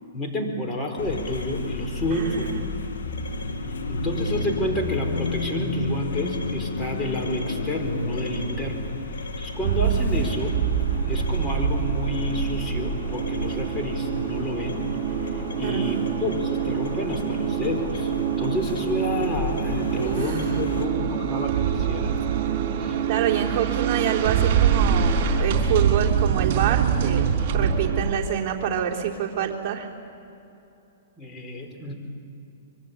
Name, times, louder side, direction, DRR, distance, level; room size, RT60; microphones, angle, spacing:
voice 1, 0.1-2.5 3.9-8.9 9.4-10.6 11.1-14.9 15.3-18.1 18.4-22.2 22.8-23.0 31.2-31.9, left 1 dB, 20° left, 2 dB, 4.7 m, -30 dB
sound 1, 1.0-20.9, left 2 dB, 90° left, 2.7 m, -32 dB
voice 2, 2.1-2.8 15.6-15.9 20.0-20.4 23.1-29.9, right 9 dB, 35° right, -4 dB, 3.8 m, -27 dB
sound 2, 9.6-28.2, right 7 dB, 50° right, 4.3 m, -25 dB
25.5 x 24.0 x 8.6 m, 2.8 s
hypercardioid pair, 130°, 0 cm